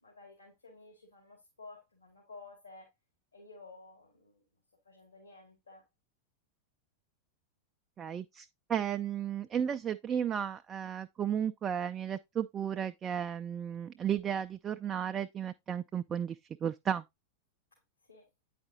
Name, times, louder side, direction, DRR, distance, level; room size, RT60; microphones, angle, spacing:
voice 1, 0.0-2.9 3.3-4.4 4.8-5.8 18.1-18.3, left 3 dB, 80° left, 2.2 m, -53 dB
voice 2, 8.0-17.0, right 8 dB, 25° right, 0.3 m, -34 dB
8.7 x 5.0 x 2.7 m
figure-of-eight pair, 90°, 0 cm